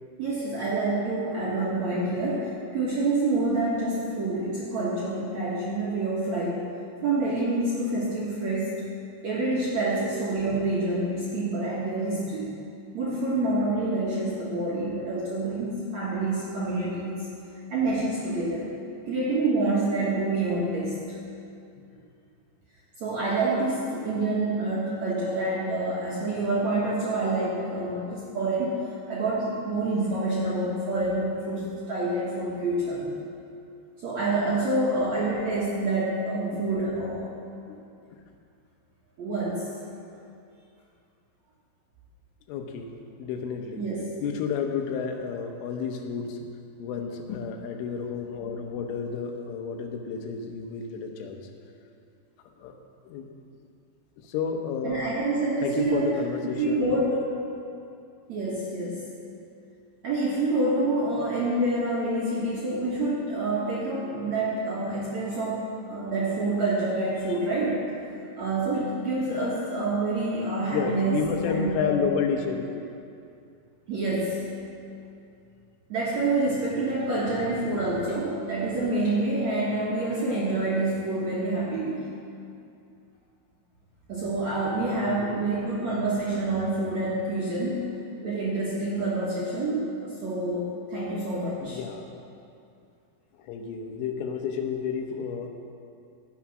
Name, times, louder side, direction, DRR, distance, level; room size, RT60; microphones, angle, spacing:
voice 1, 0.2-6.6 7.0-8.9 9.2-12.6 12.9-17.2 17.7-18.7 19.1-21.2 23.0-28.8 29.1-33.1 34.0-37.3 39.2-39.7 43.8-44.2 54.8-56.2 56.4-57.2 58.3-59.1 60.0-67.9 68.4-72.0 73.9-74.5 75.9-82.1 84.1-87.9 88.2-91.8, right 2 dB, 60° right, -7 dB, 1.9 m, -27 dB
voice 2, 42.5-42.9 43.2-43.9 44.2-46.4 46.8-51.5 52.6-52.8 53.1-53.3 54.2-55.0 55.6-57.0 67.2-67.3 70.7-72.7 84.8-85.6 91.6-92.1 93.3-95.5, left 6 dB, 90° left, 4 dB, 3.5 m, -31 dB
16.0 x 7.3 x 6.0 m, 2.5 s
omnidirectional pair, 5.5 m